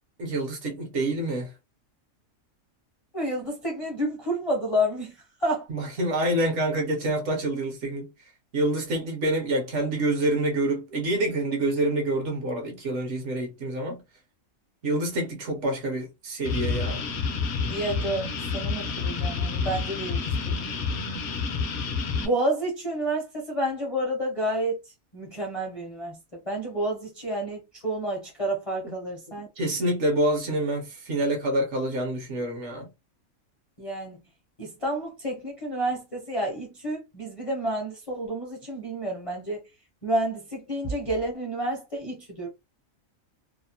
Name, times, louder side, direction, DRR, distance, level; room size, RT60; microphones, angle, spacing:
voice 1, 0.2-1.5 5.7-8.1 8.5-14.0 14.8-17.0 28.8-29.0 29.6-32.9, right 1 dB, 60° right, 1.0 m, -27 dB
voice 2, 3.1-5.1 5.4-5.7 17.7-20.5 22.2-24.8 25.1-26.2 26.4-29.5 33.8-34.2 34.6-39.6 40.0-42.5, right 1 dB, 35° left, 0.5 m, -29 dB
sound 1, 16.4-22.3, left 4 dB, 65° left, 0.8 m, -29 dB
2.7 x 2.0 x 2.7 m
omnidirectional pair, 1.4 m